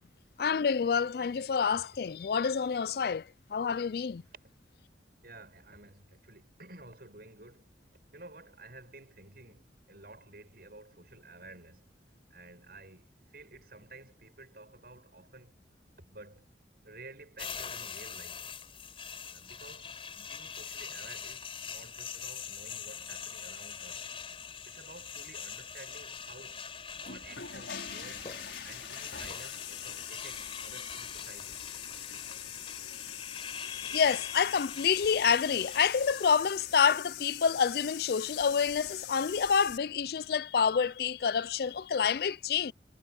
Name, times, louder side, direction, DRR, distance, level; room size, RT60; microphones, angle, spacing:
voice 1, 0.4-4.2 33.6-42.7, left 6 dB, 60° left, 0.4 m, -28 dB
voice 2, 5.2-7.7 8.1-11.9 12.3-15.6 16.0-16.5 16.8-18.5 19.3-24.1 24.7-26.6 27.0-28.3 28.6-32.3, right 2 dB, 55° right, 7.5 m, -52 dB
sound 1, 17.4-36.3, left 6 dB, 30° left, 4.4 m, -43 dB
sound 2, 26.9-39.8, left 10 dB, 75° left, 5.6 m, -43 dB
head